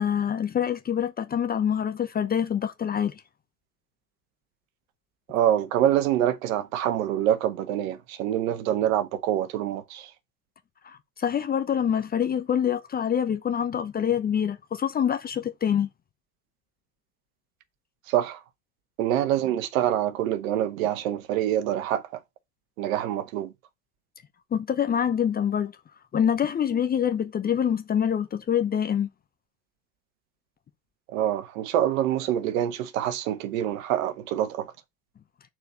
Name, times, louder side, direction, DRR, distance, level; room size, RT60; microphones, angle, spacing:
voice 1, 0.0-3.2 10.8-15.9 24.5-25.7 26.1-29.1, left 8 dB, 20° left, 0.8 m, -25 dB
voice 2, 5.3-10.1 18.1-18.4 19.0-22.0 22.8-23.5 31.1-34.7, right 11 dB, 55° right, 1.4 m, -25 dB
6.6 x 4.5 x 6.4 m
figure-of-eight pair, 85°, 47 cm